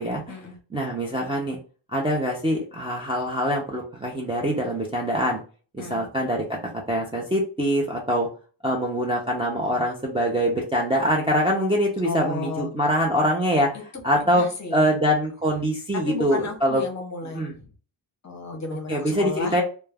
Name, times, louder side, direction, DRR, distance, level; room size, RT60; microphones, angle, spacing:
voice 1, 0.7-1.6 1.9-5.4 5.7-6.6 6.9-8.3 8.6-13.7 14.0-14.5 14.7-16.8 17.3-17.5 18.9-19.6, equal, 15° right, -3 dB, 0.3 m, -24 dB
voice 2, 12.0-12.7 14.2-14.9 16.1-17.7 18.2-19.6, left 3 dB, 35° left, 3 dB, 0.6 m, -33 dB
2.2 x 2.1 x 3.2 m, 0.37 s
wide cardioid pair, 170°, 49 cm